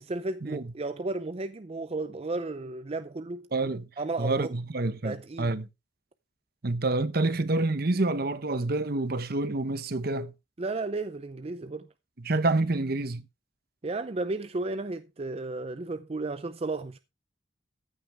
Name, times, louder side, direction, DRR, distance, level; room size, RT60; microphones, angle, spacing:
voice 1, 0.1-3.5 4.0-4.5 5.0-5.6 10.6-11.9 13.8-17.0, right 2 dB, 35° right, 0.5 m, -33 dB
voice 2, 3.5-3.9 4.2-5.7 6.6-10.3 12.2-13.2, right 2 dB, 55° right, 1.0 m, -28 dB
14.0 x 9.0 x 3.4 m
head